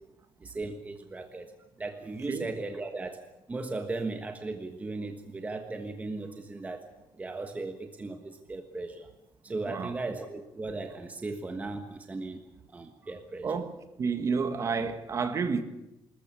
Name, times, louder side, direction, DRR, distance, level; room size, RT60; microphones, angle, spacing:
voice 1, 0.4-1.5 1.8-3.2 3.5-6.8 7.2-9.1 9.4-12.4 12.7-13.5, right 3 dB, 20° right, 1.4 m, -37 dB
voice 2, 9.6-10.0 13.4-13.7 14.0-15.6, right 5 dB, 35° right, 1.8 m, -30 dB
26.0 x 14.0 x 8.5 m
cardioid pair, 150°, 8 cm